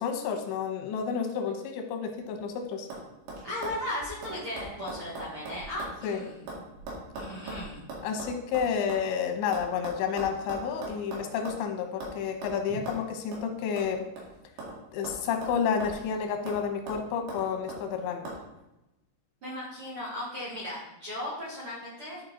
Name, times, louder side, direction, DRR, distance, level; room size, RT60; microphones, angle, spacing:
voice 1, 0.0-2.9 6.0-6.2 8.0-14.1 14.9-18.3, left 7 dB, 90° left, 4 dB, 3.3 m, -30 dB
sound 1, 2.1-2.5 2.9-3.0 3.3-6.0 6.2-9.0 9.5-11.7 12.0-12.2 12.4-12.6 12.9-13.0 13.3-13.4 13.8-14.8 15.0-16.1 16.5-16.6 16.9-17.8 18.2-18.4, right 2 dB, 75° right, 4.2 m, -40 dB
voice 2, 3.4-6.4 7.1-7.9 19.4-22.2, left 1 dB, 50° right, -7 dB, 1.6 m, -36 dB
11.5 x 4.8 x 3.9 m, 0.93 s
omnidirectional pair, 5.0 m